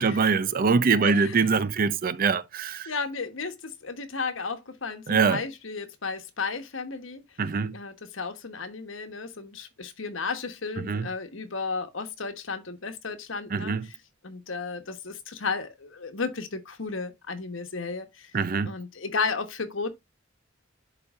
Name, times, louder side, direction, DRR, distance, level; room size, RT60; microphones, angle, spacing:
voice 1, 0.0-2.9 5.1-5.4 7.4-7.7 10.8-11.1 13.5-13.9 18.3-18.7, right 5 dB, 50° right, 0.5 m, -23 dB
voice 2, 1.0-1.5 2.9-7.2 7.7-14.0 14.2-18.3 18.7-19.9, left 4 dB, 90° left, 1.2 m, -33 dB
11.5 x 4.0 x 2.4 m
head